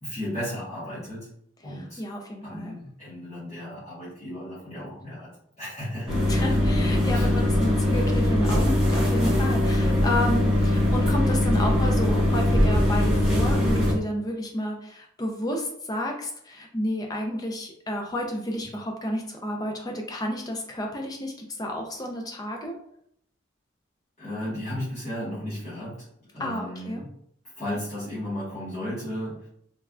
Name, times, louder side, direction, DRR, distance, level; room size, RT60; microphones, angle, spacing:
voice 1, 0.0-1.3 1.6-2.0 2.4-5.3 5.6-6.2 6.5-6.6 7.1-7.3 10.5-10.7 24.2-26.0 26.3-27.1 27.6-29.5, equal, 35° left, -11 dB, 1.0 m, -34 dB
voice 2, 1.6-2.8 6.3-22.8 26.4-27.0, left 1 dB, 20° left, 2 dB, 0.3 m, -31 dB
sound 1, 6.1-13.9, left 1 dB, 5° right, 0.7 m, -21 dB
3.1 x 2.3 x 2.3 m, 0.69 s
head